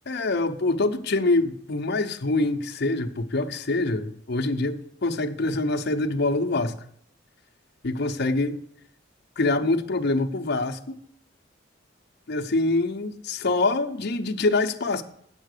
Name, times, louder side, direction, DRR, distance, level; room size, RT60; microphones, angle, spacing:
voice 1, 0.1-6.8 7.8-8.6 9.4-11.0 12.3-15.0, left 2 dB, 60° left, 0.8 m, -25 dB
8.2 x 7.2 x 6.6 m
head